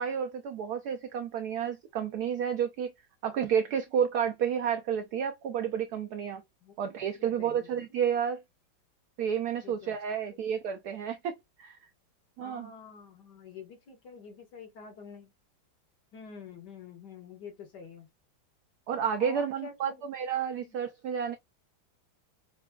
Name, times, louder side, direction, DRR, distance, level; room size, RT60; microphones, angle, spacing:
voice 1, 0.0-2.9 3.2-6.4 6.8-8.4 9.2-11.3 11.6-11.8 12.4-12.7 18.9-21.4, right 8 dB, 80° right, 0.8 m, -31 dB
voice 2, 6.6-7.8 9.6-10.2 12.4-15.3 16.1-18.1 19.2-20.0 20.6-20.8, left 5 dB, 60° left, 1.9 m, -47 dB
5.7 x 2.3 x 2.3 m
omnidirectional pair, 2.2 m